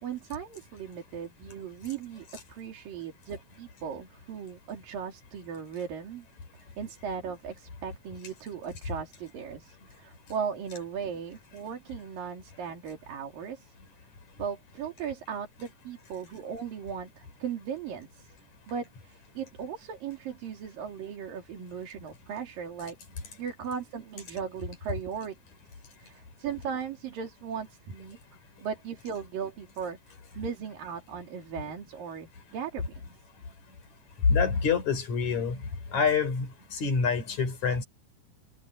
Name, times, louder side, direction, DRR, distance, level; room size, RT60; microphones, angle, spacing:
voice 1, 0.0-6.3 6.5-13.7 14.4-18.3 18.7-23.0 23.4-25.4 26.0-28.2 28.6-33.1, right 7 dB, 85° right, 4.6 m, -37 dB
voice 2, 34.2-35.6 35.9-37.8, left 5 dB, 55° left, 6.0 m, -26 dB
omnidirectional pair, 3.9 m